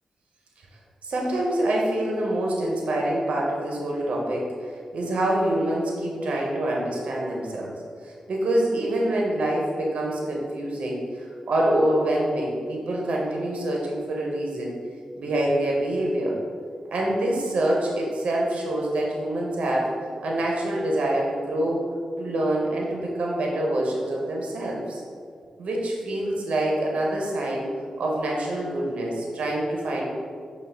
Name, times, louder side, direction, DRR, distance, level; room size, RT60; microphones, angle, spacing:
voice 1, 1.0-7.7 8.0-14.7 15.2-16.4 16.9-19.9 20.2-21.8 22.2-25.0 25.6-27.7 28.0-30.0, right 1 dB, 75° right, -2 dB, 0.6 m, -26 dB
5.5 x 2.3 x 3.3 m, 2.2 s
cardioid pair, 70°, 2 cm